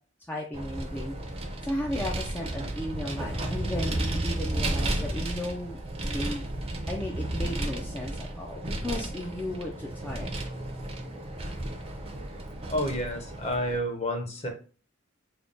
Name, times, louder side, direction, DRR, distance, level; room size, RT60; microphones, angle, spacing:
voice 1, 0.3-1.1 1.6-5.8 6.0-6.5 6.9-10.3, left 1 dB, 10° left, -2 dB, 0.4 m, -35 dB
Vehicle, 0.5-13.8, right 1 dB, 30° right, 0.6 m, -33 dB
voice 2, 12.7-14.5, equal, 35° left, 3 dB, 0.8 m, -30 dB
3.5 x 2.2 x 3.8 m, 0.38 s
head